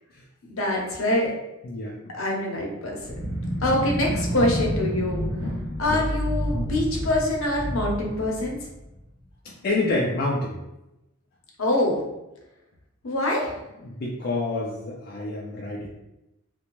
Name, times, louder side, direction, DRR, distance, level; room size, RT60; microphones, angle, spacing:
voice 1, 0.4-1.3 2.1-2.9 3.6-5.2 5.8-8.6 11.6-12.0 13.0-13.5, left 1 dB, 70° left, -1 dB, 0.7 m, -24 dB
voice 2, 1.6-2.1 4.1-4.2 5.9-6.0 9.4-10.6 13.8-15.9, left 2 dB, 45° left, -4 dB, 0.4 m, -28 dB
sound 1, 3.0-9.0, equal, 60° right, 0.9 m, -29 dB
2.5 x 2.1 x 3.0 m, 0.93 s
head